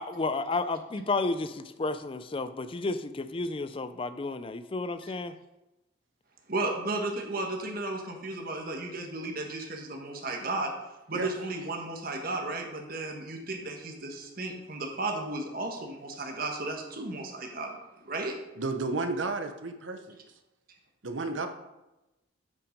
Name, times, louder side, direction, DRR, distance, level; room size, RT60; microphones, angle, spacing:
voice 1, 0.0-5.3, left 3 dB, 25° left, 12 dB, 0.4 m, -32 dB
voice 2, 6.5-10.7 11.1-17.8 18.0-18.4, right 2 dB, 45° right, 2 dB, 1.4 m, -34 dB
voice 3, 18.5-20.2 21.0-21.5, right 3 dB, 70° right, 7 dB, 0.8 m, -32 dB
8.3 x 5.8 x 5.2 m, 1.0 s
head